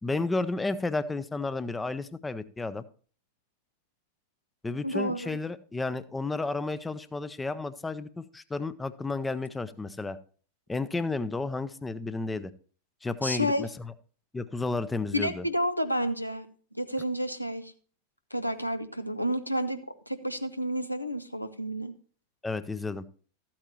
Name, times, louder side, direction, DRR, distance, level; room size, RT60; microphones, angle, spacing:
voice 1, 0.0-2.8 4.6-10.2 10.7-12.5 13.0-13.9 14.3-15.4 22.4-23.1, left 3 dB, 10° left, 15 dB, 0.5 m, -32 dB
voice 2, 4.8-5.4 13.2-13.6 15.1-16.5 16.7-17.7 18.3-21.9, equal, 90° left, 10 dB, 0.7 m, -30 dB
13.5 x 8.7 x 2.9 m, 0.41 s
figure-of-eight pair, 90°, 0 cm